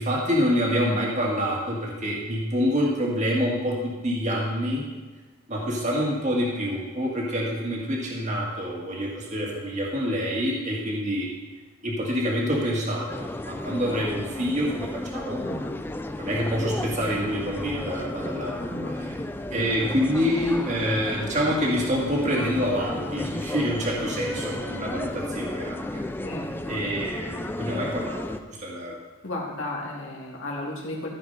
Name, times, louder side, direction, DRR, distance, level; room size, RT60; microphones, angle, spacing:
voice 1, 0.0-4.8 5.5-11.3 11.8-15.4 16.2-18.5 18.9-19.2 19.5-26.0 26.7-29.0, equal, 35° right, -3 dB, 1.8 m, -27 dB
sound 1, 13.1-28.4, left 1 dB, 10° left, 0.3 m, -33 dB
voice 2, 15.4-15.8 18.6-19.1 26.2-26.5 29.2-31.1, left 1 dB, 65° left, -2 dB, 2.3 m, -34 dB
14.5 x 5.1 x 5.3 m, 1.3 s
head